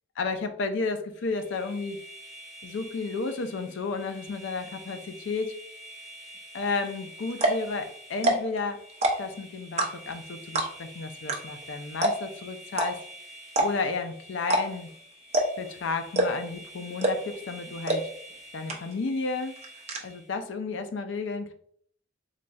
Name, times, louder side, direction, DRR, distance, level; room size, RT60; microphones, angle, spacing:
voice 1, 0.2-2.0 2.6-5.6 6.5-8.8 9.2-13.0 13.6-14.9 15.6-18.1 18.5-19.5 20.0-21.5, left 4 dB, 70° left, 7 dB, 0.4 m, -32 dB
sound 1, 1.2-20.4, right 1 dB, 30° left, 1.4 m, -47 dB
sound 2, 6.9-7.0 7.3-7.7 8.1-8.6 8.9-9.3 9.8-10.2 10.5-10.9 11.3-11.4 11.6-11.7 12.0-12.4 12.7-12.9 13.5-13.9 14.4-14.6 14.9-15.0 15.3-15.7 16.1-16.5 17.0-17.3 17.9-18.0 18.3-18.4 18.7-19.1 19.4-20.0, right 1 dB, 35° right, 0.6 m, -24 dB
4.0 x 3.1 x 2.3 m, 0.62 s
head